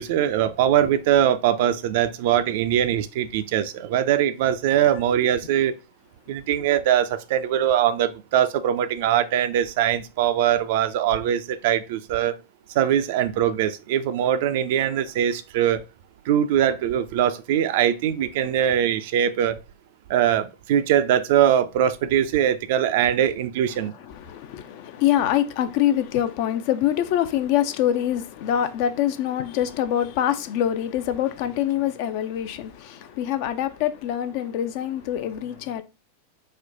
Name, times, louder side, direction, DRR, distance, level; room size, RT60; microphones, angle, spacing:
voice 1, 0.0-5.7 6.3-12.4 12.8-15.8 16.3-19.6 20.1-23.9, right 10 dB, 50° right, 0.4 m, -22 dB
voice 2, 24.0-35.8, left 11 dB, 45° left, 0.4 m, -25 dB
4.3 x 2.2 x 3.7 m
figure-of-eight pair, 90°, 0 cm